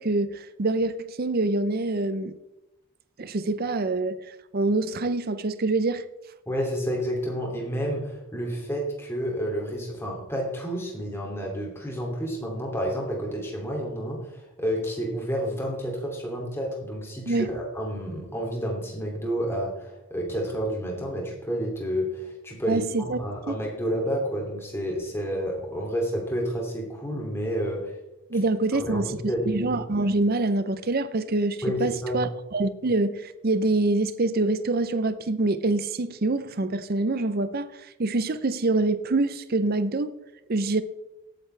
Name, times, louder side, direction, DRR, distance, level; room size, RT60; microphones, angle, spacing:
voice 1, 0.0-2.3 3.2-6.1 17.3-17.5 22.7-23.2 23.5-23.6 28.3-37.7 38.0-40.1 40.5-40.8, right 2 dB, 45° right, 0.6 m, -25 dB
voice 2, 6.5-27.9 28.9-29.7 31.6-32.2, equal, 10° left, 2.6 m, -30 dB
17.0 x 9.2 x 3.3 m
head